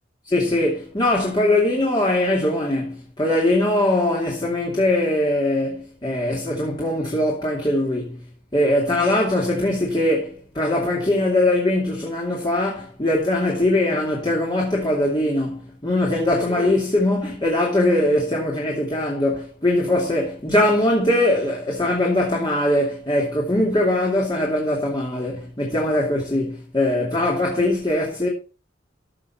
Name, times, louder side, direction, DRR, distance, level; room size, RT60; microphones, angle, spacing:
voice 1, 0.2-8.2 8.5-28.3, left 1 dB, 25° left, 2.6 m, -21 dB
14.0 x 6.7 x 4.3 m
head